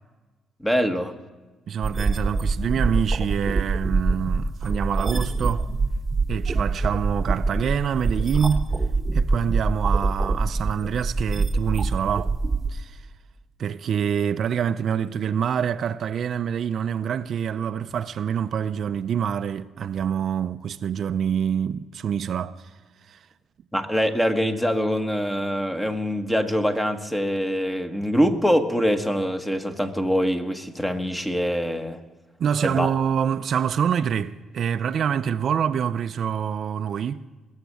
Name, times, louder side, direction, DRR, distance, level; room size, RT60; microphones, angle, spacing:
voice 1, 0.6-1.1 23.7-32.0 32.6-32.9, equal, 10° left, 1.2 m, -24 dB
voice 2, 1.7-5.7 6.3-8.7 9.1-12.3 12.7-13.0 13.6-22.6 23.1-23.2 32.4-37.2, right 8 dB, 60° right, 0.4 m, -26 dB
sound 1, 1.8-12.7, right 3 dB, 25° right, 1.0 m, -24 dB
21.0 x 7.3 x 8.2 m
cardioid pair, 90°, 0 cm